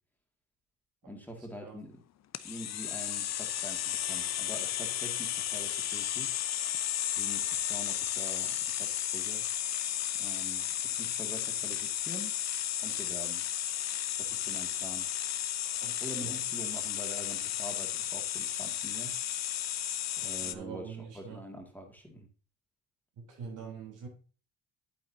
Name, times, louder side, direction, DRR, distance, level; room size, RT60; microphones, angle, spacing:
voice 1, 1.1-2.0 2.4-6.3 7.1-9.4 10.2-12.3 12.8-13.4 14.2-15.1 16.0-19.2 20.2-22.3, equal, 5° left, 2 dB, 2.2 m, -45 dB
sound 1, 2.3-20.5, left 11 dB, 60° left, 0.7 m, -33 dB
voice 2, 20.4-21.4 23.1-24.1, right 7 dB, 80° right, 1 dB, 3.7 m, -44 dB
8.5 x 8.4 x 2.8 m, 0.36 s
cardioid pair, 90°, 30 cm